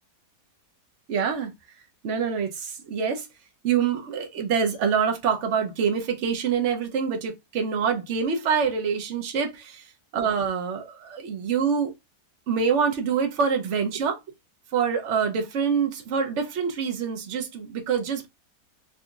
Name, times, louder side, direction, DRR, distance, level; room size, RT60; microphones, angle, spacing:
voice 1, 1.1-1.5 2.0-3.3 3.6-9.8 10.1-11.9 12.5-14.2 14.7-18.3, right 6 dB, 55° right, 0.9 m, -25 dB
3.8 x 2.7 x 2.4 m
omnidirectional pair, 1.8 m